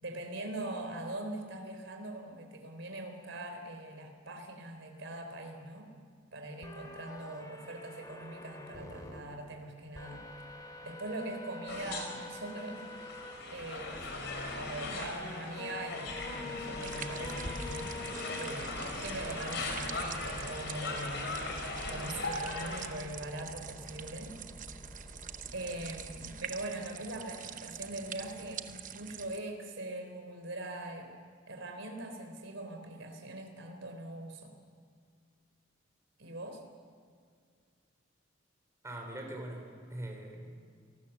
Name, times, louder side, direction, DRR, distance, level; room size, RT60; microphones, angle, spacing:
voice 1, 0.0-5.9 6.3-10.2 10.8-12.9 13.5-14.1 14.6-18.0 18.4-21.3 21.9-24.4 25.5-31.1 31.5-34.5 36.2-36.6, right 1 dB, 70° right, 5 dB, 3.9 m, -42 dB
sound 1, 6.6-9.2 9.9-13.4 13.9-14.0 15.2-26.4, left 2 dB, 20° left, 2.5 m, -47 dB
sound 2, 11.7-22.9, left 2 dB, 60° left, 4.8 m, -39 dB
sound 3, 16.8-29.4, right 8 dB, 40° right, 0.9 m, -46 dB
voice 2, 38.8-40.5, right 1 dB, 15° right, 2 dB, 3.8 m, -42 dB
28.0 x 19.0 x 7.2 m, 2.1 s
head